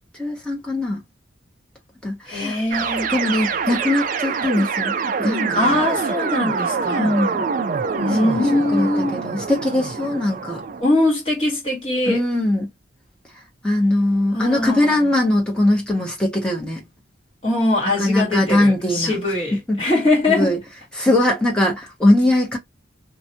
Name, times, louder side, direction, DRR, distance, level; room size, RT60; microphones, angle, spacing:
voice 1, 0.2-1.0 2.0-2.6 3.1-4.9 5.2-5.8 7.0-7.5 8.1-10.6 12.1-12.7 13.6-16.8 18.0-19.1 19.7-19.8 20.3-20.6 20.9-22.6, left 1 dB, 5° left, 0.9 m, -20 dB
voice 2, 2.3-3.1 5.5-7.1 8.0-9.2 10.8-12.2 14.3-15.1 17.4-20.6, left 2 dB, 30° left, 1.4 m, -21 dB
sound 1, 2.7-10.8, right 5 dB, 45° right, 0.3 m, -25 dB
2.5 x 2.2 x 2.7 m
head